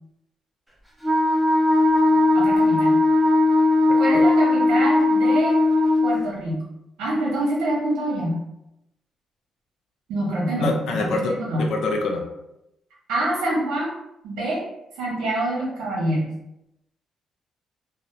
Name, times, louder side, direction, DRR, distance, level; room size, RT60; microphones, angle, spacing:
Wind instrument woodwind instrument, 1.0-6.2, left 2 dB, 5° right, 0.6 m, -18 dB
voice 1, 2.3-3.0 4.0-5.6 6.0-6.7 7.0-8.4 10.1-11.7 13.1-13.9 14.2-14.6 15.0-16.3, right 1 dB, 90° right, -5 dB, 1.0 m, -25 dB
voice 2, 10.6-12.2, left 3 dB, 75° left, 1 dB, 0.4 m, -25 dB
2.7 x 2.0 x 2.6 m, 0.86 s
cardioid pair, 90°, 0 cm